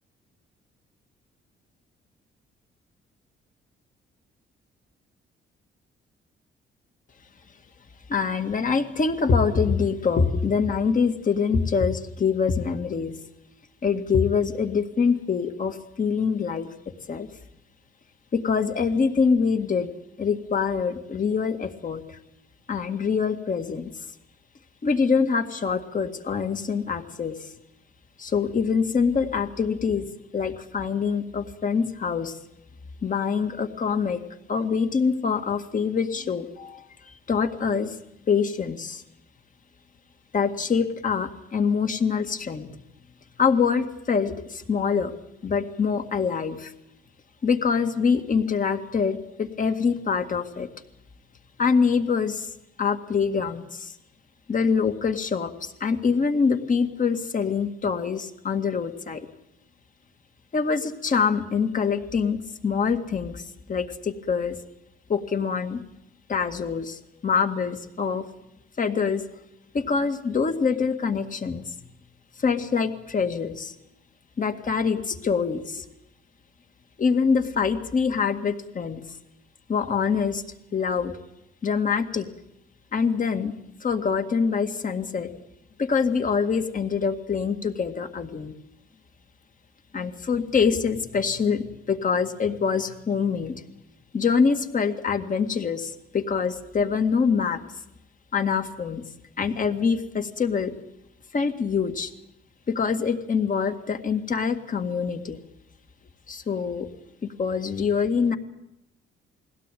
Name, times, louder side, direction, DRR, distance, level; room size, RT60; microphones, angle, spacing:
voice 1, 8.1-13.2 13.8-16.7 17.1-17.3 18.3-19.9 20.2-22.2 22.7-23.9 24.8-27.5 28.2-30.1 30.3-32.4 33.0-34.2 34.5-36.8 37.3-38.0 38.3-39.0 40.3-42.7 43.4-45.1 45.4-46.7 47.4-50.7 51.6-52.5 52.8-53.9 54.5-59.3 60.5-63.4 63.7-64.6 65.1-65.8 66.3-68.3 68.8-69.2 69.7-71.6 72.4-73.7 74.4-75.8 77.0-79.0 79.7-80.4 80.7-81.1 81.6-82.3 82.9-85.3 85.8-88.5 89.9-93.6 94.1-97.6 98.3-99.0 99.4-100.7 101.3-102.1 102.7-105.4 106.3-106.9 107.2-108.4, left 5 dB, 40° left, 7 dB, 2.1 m, -25 dB
21.5 x 17.0 x 9.2 m, 0.85 s
cardioid pair, 90°, 20 cm